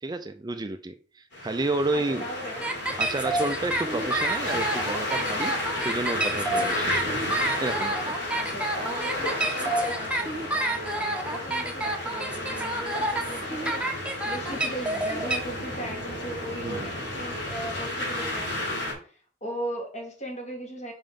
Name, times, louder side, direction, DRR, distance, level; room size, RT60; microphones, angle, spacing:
voice 1, 0.0-2.3 3.0-7.2 7.6-8.2 16.6-16.9, right 2 dB, 20° right, 0.4 m, -31 dB
sound 1, 1.3-18.9, left 1 dB, 75° left, 3.6 m, -32 dB
voice 2, 1.9-2.7 8.3-20.9, right 1 dB, 40° left, 2.7 m, -38 dB
sound 2, 2.6-15.4, right 1 dB, 5° right, 1.0 m, -29 dB
5.6 x 5.1 x 5.2 m
head